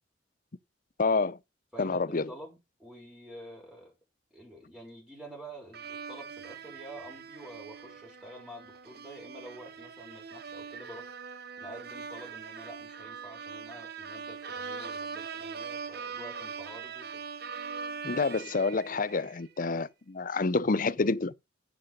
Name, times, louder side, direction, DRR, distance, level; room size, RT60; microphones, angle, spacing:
voice 1, 1.0-1.4 1.8-2.3 18.0-21.3, left 3 dB, 45° left, 0.6 m, -28 dB
voice 2, 1.7-3.9 4.3-11.1 11.6-17.3, right 1 dB, 5° right, 6.2 m, -48 dB
sound 1, 5.7-19.4, right 5 dB, 55° right, 1.0 m, -42 dB
10.5 x 7.6 x 5.3 m
head